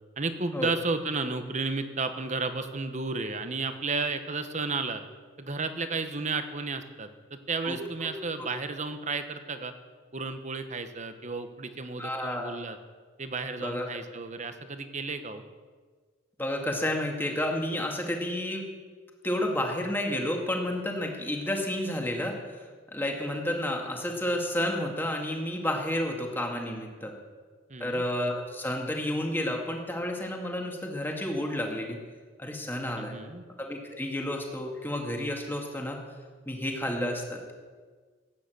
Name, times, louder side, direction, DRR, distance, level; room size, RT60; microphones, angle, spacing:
voice 1, 0.2-5.0 5.4-9.7 10.1-12.8 13.2-15.4 27.7-28.0 33.0-33.4, right 3 dB, 35° right, 9 dB, 1.1 m, -33 dB
voice 2, 12.0-12.6 13.6-13.9 16.4-18.7 19.2-22.3 22.9-27.1 27.8-32.0 32.4-33.2 33.6-36.0 36.5-37.5, left 1 dB, 10° left, 1 dB, 2.0 m, -31 dB
17.0 x 9.3 x 7.8 m, 1.5 s
head